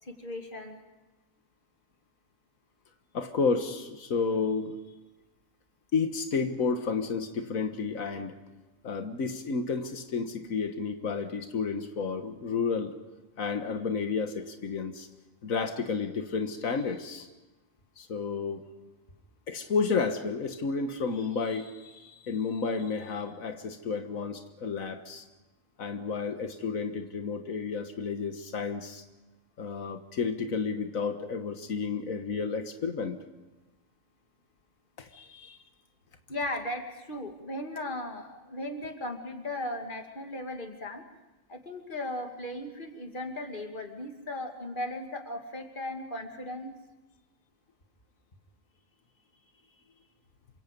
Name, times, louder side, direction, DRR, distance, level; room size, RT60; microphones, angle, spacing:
voice 1, 0.0-0.8 36.3-41.0 41.5-46.7, left 1 dB, 40° left, 4 dB, 2.7 m, -37 dB
voice 2, 3.1-4.8 5.9-8.4 8.8-12.9 13.4-15.1 15.4-17.3 18.0-18.6 19.5-25.2 25.8-29.0 29.6-33.2 35.0-35.6, left 5 dB, 90° left, 7 dB, 1.8 m, -31 dB
28.0 x 25.5 x 5.3 m, 1.1 s
omnidirectional pair, 1.4 m